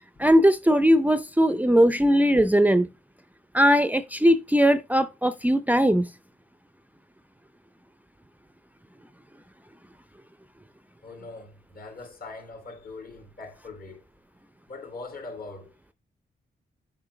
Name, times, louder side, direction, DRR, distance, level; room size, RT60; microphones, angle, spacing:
voice 1, 0.2-2.9 3.5-6.1, equal, 10° right, 0.6 m, -19 dB
voice 2, 11.0-14.0 14.7-15.7, left 3 dB, 55° left, 3.2 m, -41 dB
7.4 x 5.6 x 3.2 m
cardioid pair, 65°, 18 cm